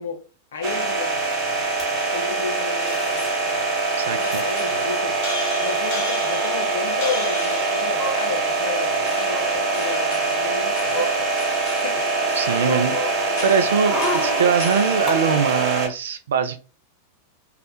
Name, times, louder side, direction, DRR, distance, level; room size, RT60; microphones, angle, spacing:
voice 1, 0.0-3.7 4.1-5.2 5.6-11.3 11.7-13.6, left 5 dB, 65° left, 0.5 m, -33 dB
sound 1, 0.6-15.9, right 3 dB, 35° right, 0.7 m, -24 dB
sound 2, 1.8-1.9 2.9-3.3 3.7-3.8 3.9-4.5 5.4-5.5 5.7-5.9 7.5-8.6 9.2-9.6 10.2-11.9 12.2-15.1 15.5-15.6, right 1 dB, 10° left, 1.0 m, -32 dB
sound 3, 1.9-15.7, left 1 dB, 45° left, 0.9 m, -33 dB
voice 2, 4.0-4.4 12.4-12.9 13.4-16.6, right 6 dB, 65° right, 0.3 m, -22 dB
2.3 x 2.0 x 2.8 m
figure-of-eight pair, 90°, 0 cm